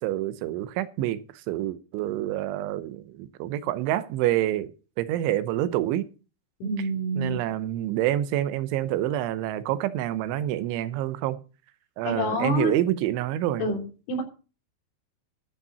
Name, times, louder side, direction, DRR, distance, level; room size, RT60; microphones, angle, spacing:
voice 1, 0.0-4.7 5.0-6.0 7.2-11.4 12.0-13.7, right 13 dB, 90° right, 3.2 m, -27 dB
voice 2, 6.6-7.4 12.0-12.8 13.6-14.2, left 1 dB, 90° left, 5.9 m, -27 dB
13.5 x 5.6 x 6.9 m
omnidirectional pair, 5.3 m